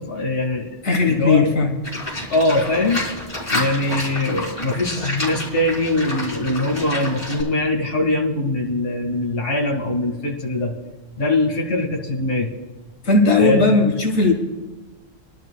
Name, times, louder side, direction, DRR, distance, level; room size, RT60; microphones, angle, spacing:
voice 1, 0.0-0.7 1.1-1.6 2.3-3.1 3.5-10.7 11.2-12.5 13.4-13.8, left 2 dB, 45° left, 0 dB, 2.1 m, -22 dB
voice 2, 0.8-1.7 13.0-14.3, left 3 dB, 80° left, 2 dB, 2.0 m, -17 dB
Livestock farm animals working animals, 1.8-7.4, left 1 dB, 30° left, 4.1 m, -29 dB
24.5 x 12.0 x 2.3 m, 1.2 s
omnidirectional pair, 1.4 m